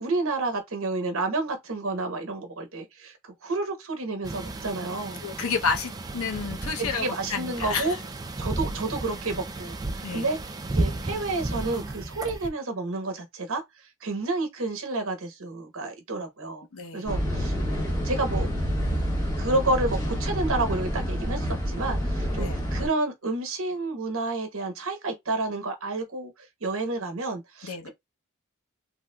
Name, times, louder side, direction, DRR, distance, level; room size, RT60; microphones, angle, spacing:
voice 1, 0.0-5.2 6.9-8.0 8.4-10.4 10.7-16.6 16.9-18.5 19.4-27.9, right 2 dB, 70° right, 1.0 m, -30 dB
sound 1, 4.2-12.5, right 2 dB, 20° right, 0.3 m, -33 dB
voice 2, 5.2-8.0 10.0-10.3 16.7-17.1 22.3-22.6 27.6-27.9, left 5 dB, 80° left, 0.7 m, -30 dB
sound 2, 17.1-22.9, equal, 15° left, 0.9 m, -28 dB
3.4 x 2.5 x 2.2 m
head